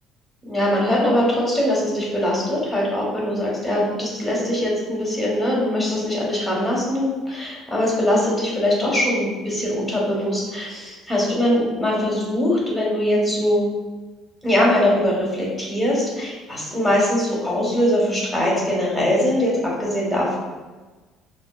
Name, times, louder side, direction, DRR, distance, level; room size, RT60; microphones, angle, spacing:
voice 1, 0.4-13.7 14.4-20.4, left 1 dB, ahead, -4 dB, 1.1 m, -22 dB
5.4 x 2.3 x 2.3 m, 1.3 s
cardioid pair, 140°, 0 cm